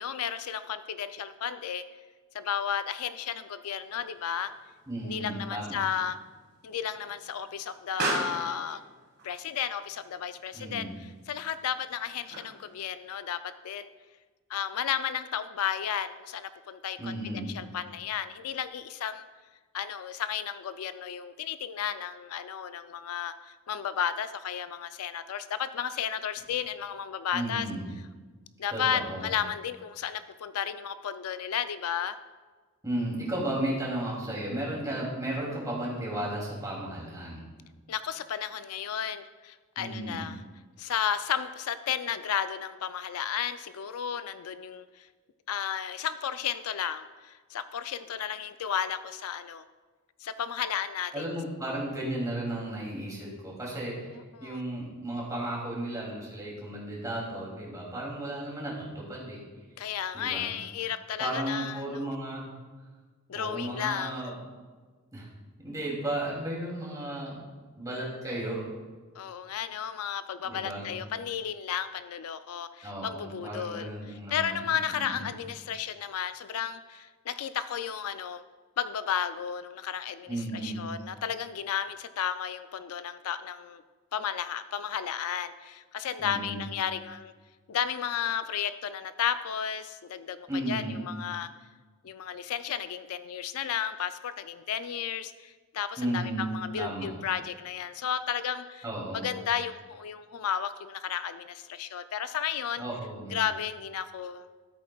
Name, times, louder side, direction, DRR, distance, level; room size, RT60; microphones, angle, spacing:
voice 1, 0.0-1.8 2.3-4.5 5.0-6.2 6.6-8.8 9.2-10.9 11.3-13.9 14.5-19.2 19.7-27.7 28.6-32.2 37.9-40.4 40.8-45.1 45.5-49.6 50.2-51.3 54.3-54.6 59.8-62.2 63.3-64.2 69.2-73.9 74.3-78.4 78.8-83.8 84.1-87.3 87.7-91.5 92.0-98.9 99.1-102.8 103.3-104.5, left 8 dB, 80° left, 12 dB, 0.4 m, -33 dB
Explosion, 3.8-12.8, right 3 dB, 50° right, 1.5 m, -40 dB
voice 2, 4.9-5.8 10.5-11.0 17.0-17.6 27.3-27.9 28.7-29.3 32.8-37.4 39.8-40.3 51.1-59.4 60.1-60.5 61.2-62.5 63.3-64.3 65.1-65.3 65.6-67.4 67.8-68.6 70.4-70.9 72.8-74.6 74.9-75.3 80.3-80.8 86.2-86.7 90.5-91.1 96.0-96.5 96.8-97.1 98.8-99.3 102.8-103.4, right 1 dB, 15° right, -4 dB, 2.7 m, -34 dB
14.0 x 8.3 x 2.3 m, 1.4 s
head